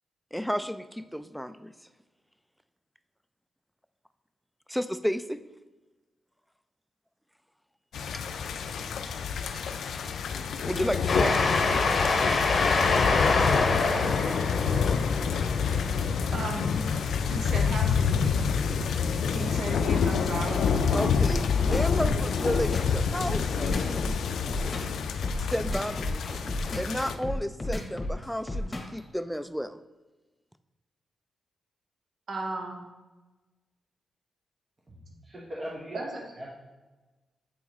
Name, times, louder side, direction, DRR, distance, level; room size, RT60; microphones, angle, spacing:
voice 1, 0.3-1.7 4.7-5.4 9.6-9.7 10.7-11.4 20.9-24.2 25.5-26.4 26.7-29.8, equal, ahead, 12 dB, 0.3 m, -32 dB
sound 1, 7.9-27.1, left 6 dB, 85° left, 0.3 m, -28 dB
Train, 11.1-17.2, left 3 dB, 60° left, 0.7 m, -26 dB
voice 2, 16.3-16.9 17.3-18.4 19.3-21.2 32.3-32.9 35.9-36.2, right 2 dB, 65° right, 1 dB, 1.0 m, -35 dB
sound 2, 21.2-29.0, left 1 dB, 30° left, 1.3 m, -33 dB
voice 3, 34.9-36.1 36.4-36.5, equal, 30° right, -5 dB, 1.0 m, -40 dB
8.5 x 3.6 x 3.1 m, 1.2 s
cardioid pair, 70°, 0 cm